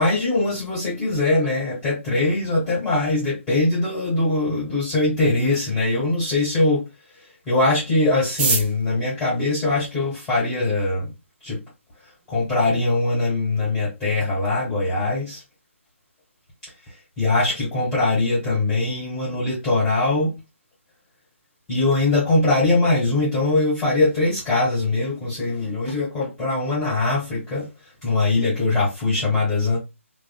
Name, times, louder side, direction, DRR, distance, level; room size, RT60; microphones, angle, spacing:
voice 1, 0.0-6.9 7.5-11.1 11.4-11.6 12.3-15.4 17.2-20.3 21.7-27.7 28.0-29.8, left 2 dB, 10° left, 1.6 m, -22 dB
sound 1, 8.2-10.5 11.3-11.4 11.6-11.7 11.9-12.4 12.7-12.8 13.0-13.5 13.8-14.0 14.3-14.6, right 4 dB, 10° right, 0.3 m, -28 dB
3.5 x 2.3 x 2.4 m
figure-of-eight pair, 140°, 7 cm